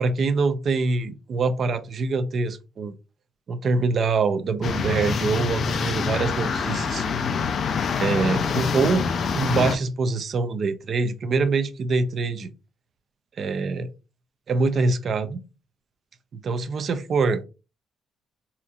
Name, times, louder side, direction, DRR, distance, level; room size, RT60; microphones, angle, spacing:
voice 1, 0.0-2.9 3.5-7.1 8.0-9.1 9.3-12.5 13.4-13.9 14.5-15.4 16.3-17.4, right 4 dB, 40° right, 0.4 m, -24 dB
sound 1, 4.6-9.8, left 5 dB, 45° left, 0.4 m, -25 dB
4.2 x 2.6 x 2.4 m
cardioid pair, 160°, 0 cm